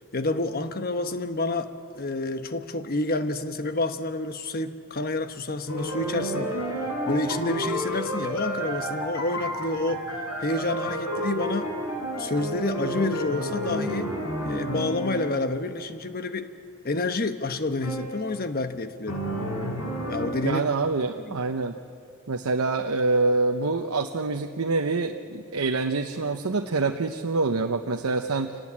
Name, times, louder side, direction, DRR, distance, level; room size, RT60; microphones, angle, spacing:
voice 1, 0.1-6.6 7.1-10.0 10.4-11.7 12.2-14.1 14.4-16.5 16.8-19.2 20.1-20.8 21.2-21.4, left 2 dB, 45° left, 9 dB, 1.1 m, -29 dB
sound 1, 5.7-15.4 17.8-18.1 19.1-20.3, equal, 85° left, 5.1 m, -30 dB
voice 2, 20.4-21.8 22.3-28.6, right 3 dB, 85° right, 4 dB, 0.9 m, -26 dB
26.5 x 18.0 x 8.7 m, 2.4 s
head